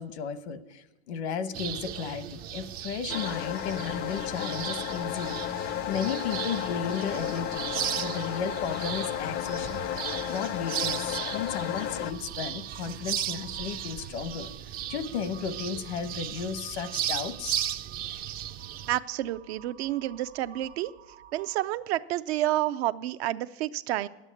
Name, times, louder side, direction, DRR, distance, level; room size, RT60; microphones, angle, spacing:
voice 1, 0.0-7.7 7.9-9.8 10.3-14.5 14.9-17.7, left 6 dB, 85° left, 12 dB, 1.1 m, -34 dB
sound 1, 1.5-19.0, right 11 dB, 30° right, 0.4 m, -36 dB
sound 2, 3.1-12.1, left 11 dB, 35° left, 0.4 m, -33 dB
Crow, 6.5-22.0, right 9 dB, 90° right, 1.4 m, -53 dB
voice 2, 18.9-20.9 21.3-24.1, right 15 dB, 70° right, 13 dB, 0.6 m, -29 dB
10.5 x 8.2 x 9.7 m, 1.0 s
supercardioid pair, 135°, 33 cm